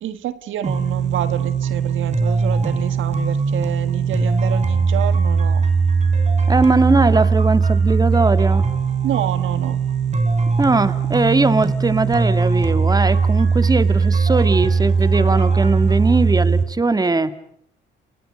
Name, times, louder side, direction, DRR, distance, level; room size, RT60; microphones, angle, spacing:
voice 1, 0.0-5.7 9.0-9.9, right 11 dB, 80° right, 1.7 m, -28 dB
sound 1, 0.6-16.6, right 5 dB, 35° right, 4.5 m, -19 dB
voice 2, 6.5-8.6 10.6-17.3, right 3 dB, 20° right, 2.0 m, -19 dB
30.0 x 29.5 x 5.2 m
cardioid pair, 90°, 20 cm